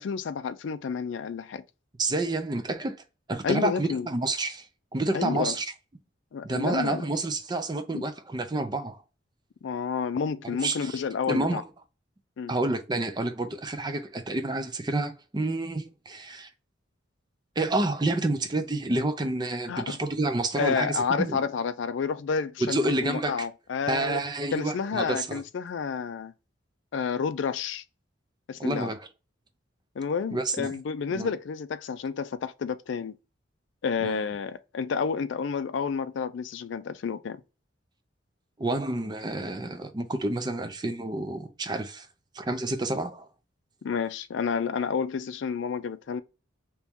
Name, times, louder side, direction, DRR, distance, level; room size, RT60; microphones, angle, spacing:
voice 1, 0.0-1.6 3.4-4.1 5.1-5.6 6.3-7.0 7.9-8.0 9.6-11.6 12.4-12.5 19.7-20.0 20.6-24.2 24.5-26.3 26.9-27.8 28.5-28.9 30.0-33.1 33.8-37.4 43.8-46.2, left 6 dB, 70° left, 0.4 m, -30 dB
voice 2, 2.0-3.0 3.3-4.7 4.9-5.7 6.4-9.0 10.6-11.0 11.3-11.6 12.5-16.5 17.6-21.5 22.6-23.5 23.9-25.4 28.6-29.1 30.3-30.7 31.1-31.3 34.0-34.3 38.6-42.1 42.3-43.3, right 2 dB, 20° right, 0.4 m, -29 dB
3.0 x 2.7 x 3.5 m
head